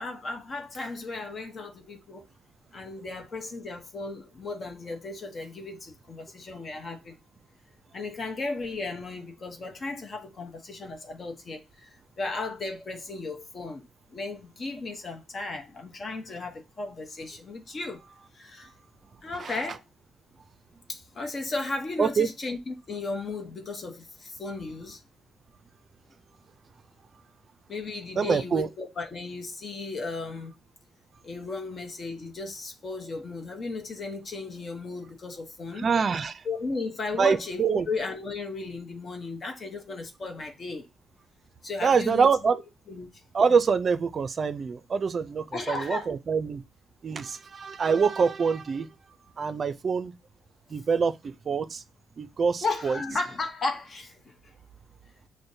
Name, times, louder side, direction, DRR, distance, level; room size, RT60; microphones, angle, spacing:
voice 1, 0.0-2.3 2.7-7.2 7.9-13.9 14.1-18.0 18.3-18.7 19.2-19.8 20.9-25.0 27.7-30.5 31.2-35.9 36.4-40.9 41.6-42.6 42.9-43.1 45.5-46.1 47.1-47.2 52.6-54.5, left 3 dB, 40° left, 0.8 m, -35 dB
voice 2, 28.2-28.7 35.8-36.4 37.1-37.9 41.8-42.6 43.3-46.6 47.0-48.9 49.4-50.1 50.7-51.8 52.2-53.0, right 5 dB, 45° right, 0.4 m, -25 dB
6.1 x 2.1 x 2.7 m
cardioid pair, 90°, 0 cm